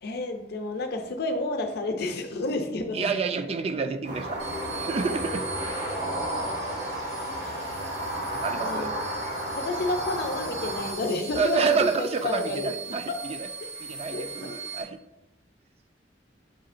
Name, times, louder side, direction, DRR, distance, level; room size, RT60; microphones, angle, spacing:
voice 1, 0.0-3.2 5.9-6.3 8.5-9.0 9.6-12.7 13.1-13.2 14.1-14.7, left 2 dB, 60° left, 5 dB, 0.6 m, -30 dB
voice 2, 2.9-4.4 4.7-5.7 8.3-8.9 11.4-13.5 13.8-15.0, right 5 dB, 35° right, 9 dB, 0.3 m, -29 dB
sound 1, 4.0-10.9, right 1 dB, 65° right, 1.3 m, -32 dB
sound 2, 4.4-14.8, right 4 dB, 80° right, 1.5 m, -40 dB
6.7 x 2.8 x 2.5 m, 0.96 s
head